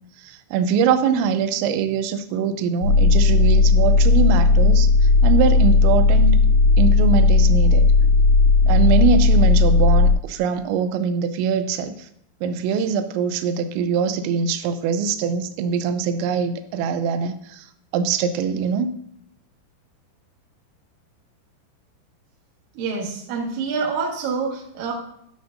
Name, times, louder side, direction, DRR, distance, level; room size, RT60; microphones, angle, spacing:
voice 1, 0.2-6.4 6.8-7.9 8.7-12.0 12.4-17.7 17.9-18.9, right 6 dB, 85° right, 10 dB, 2.7 m, -23 dB
sound 1, 2.8-10.1, left 3 dB, 75° left, 3.3 m, -15 dB
voice 2, 22.7-24.9, right 5 dB, 65° right, -2 dB, 2.0 m, -26 dB
10.5 x 6.5 x 2.6 m, 0.71 s
omnidirectional pair, 5.6 m